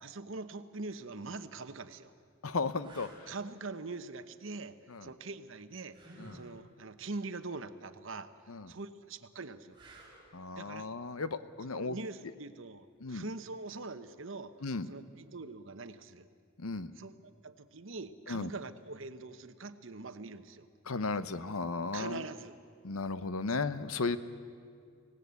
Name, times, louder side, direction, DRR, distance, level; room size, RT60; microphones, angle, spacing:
voice 1, 0.0-2.1 3.3-6.0 6.3-8.3 8.7-9.8 10.5-11.0 11.6-14.5 14.9-16.3 17.0-20.7 21.9-22.6, right 3 dB, 65° right, 11 dB, 1.0 m, -43 dB
sound 1, 1.4-1.5 2.1-2.2 2.8-3.3 5.9-6.5 9.7-10.3 13.3-13.5, right 2 dB, 25° right, 4.8 m, -53 dB
voice 2, 2.4-3.1 4.9-5.1 6.2-6.4 8.5-8.7 10.3-12.0 13.0-13.2 14.6-14.9 16.6-16.9 18.3-18.5 20.9-22.2 22.8-24.2, left 3 dB, 85° left, 13 dB, 0.9 m, -35 dB
25.5 x 18.0 x 8.3 m, 2.3 s
head